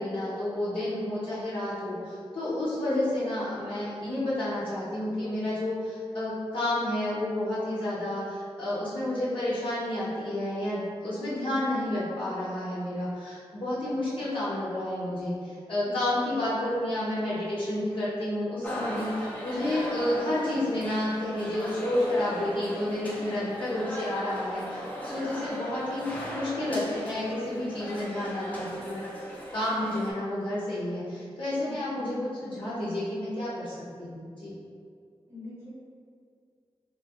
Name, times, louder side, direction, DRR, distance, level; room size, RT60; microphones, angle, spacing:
voice 1, 0.0-29.1 29.5-34.5, left 1 dB, 55° left, -11 dB, 0.7 m, -30 dB
voice 2, 15.8-16.1 31.6-32.0 35.3-35.7, left 2 dB, 20° right, -9 dB, 0.8 m, -44 dB
sound 1, 18.6-30.1, equal, 15° left, 0.6 m, -37 dB
3.4 x 2.7 x 2.9 m, 2.2 s
wide cardioid pair, 140°, 11 cm